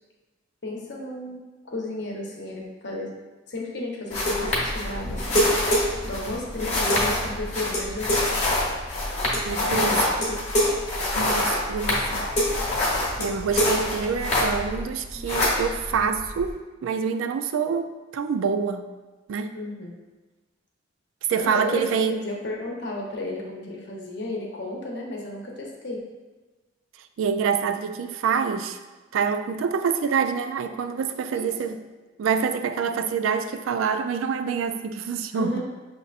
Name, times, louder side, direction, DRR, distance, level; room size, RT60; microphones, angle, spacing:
voice 1, 0.6-3.1 3.5-5.5 6.0-8.3 9.7-10.3 19.5-19.9 21.4-26.1 31.3-31.7 35.3-35.6, left 2 dB, 60° left, -1 dB, 0.8 m, -33 dB
sound 1, 4.1-14.8 15.1-16.5, left 1 dB, 35° left, 1.1 m, -25 dB
voice 2, 9.4-10.0 11.2-12.3 13.2-18.8 19.3-19.5 21.3-22.3 27.2-28.8 29.1-31.8 32.2-35.6, right 6 dB, 90° right, 9 dB, 0.3 m, -26 dB
6.5 x 2.8 x 2.4 m, 1.2 s
head